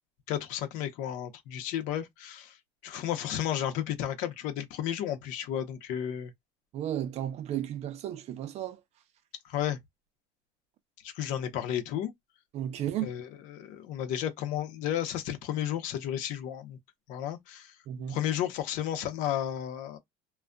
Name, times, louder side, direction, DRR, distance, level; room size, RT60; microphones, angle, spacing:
voice 1, 0.3-2.6 2.8-6.3 9.4-9.8 11.0-12.1 13.0-16.8 17.1-17.7 18.1-20.0, left 11 dB, 65° left, 0.8 m, -33 dB
voice 2, 6.7-8.8 12.5-13.1 17.9-18.2, right 11 dB, 50° right, 0.6 m, -34 dB
2.5 x 2.3 x 2.2 m
supercardioid pair, 115°, 14 cm